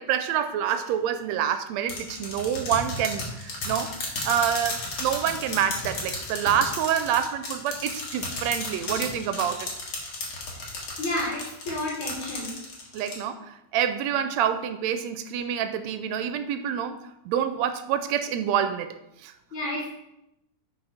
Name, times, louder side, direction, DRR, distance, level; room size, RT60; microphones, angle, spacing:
voice 1, 0.0-3.9 4.3-9.7 12.9-19.0 19.2-19.3, right 9 dB, 80° right, 9 dB, 1.7 m, -27 dB
sound 1, 1.9-13.1, left 3 dB, 60° left, 2.8 m, -33 dB
voice 2, 11.0-12.6 19.5-19.9, left 1 dB, 80° left, -3 dB, 2.9 m, -31 dB
10.5 x 4.5 x 4.9 m, 0.87 s
omnidirectional pair, 3.3 m